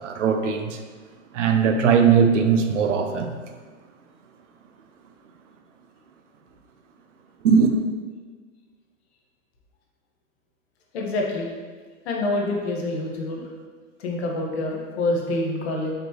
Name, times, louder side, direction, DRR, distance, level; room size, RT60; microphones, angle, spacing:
voice 1, 0.0-0.8 1.3-3.3 7.4-7.7, right 6 dB, 70° right, 6 dB, 0.6 m, -19 dB
voice 2, 10.9-11.5 12.0-13.5 14.0-15.9, left 2 dB, 55° left, 0 dB, 1.0 m, -26 dB
5.2 x 3.0 x 3.0 m, 1.5 s
hypercardioid pair, 125°, 39 cm